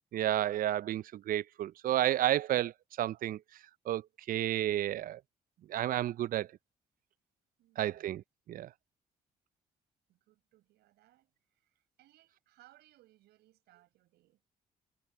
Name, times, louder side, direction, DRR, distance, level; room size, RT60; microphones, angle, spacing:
voice 1, 0.1-3.4 3.9-4.0 4.3-5.2 5.7-6.5 7.8-8.7, right 12 dB, 55° right, 0.5 m, -31 dB
voice 2, 7.6-8.2 10.1-14.4, right 16 dB, 75° right, 7.8 m, -65 dB
hypercardioid pair, 50°, 17 cm